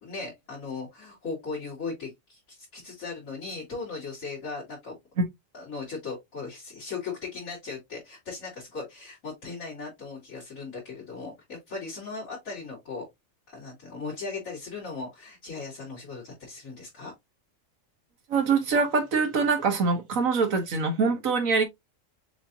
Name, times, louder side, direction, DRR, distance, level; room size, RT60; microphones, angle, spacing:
voice 1, 0.0-5.0 5.5-13.0 13.5-17.1, left 4 dB, 80° left, 2.9 m, -38 dB
voice 2, 18.3-21.6, right 4 dB, 90° right, 1.7 m, -24 dB
6.5 x 2.9 x 2.6 m
omnidirectional pair, 1.4 m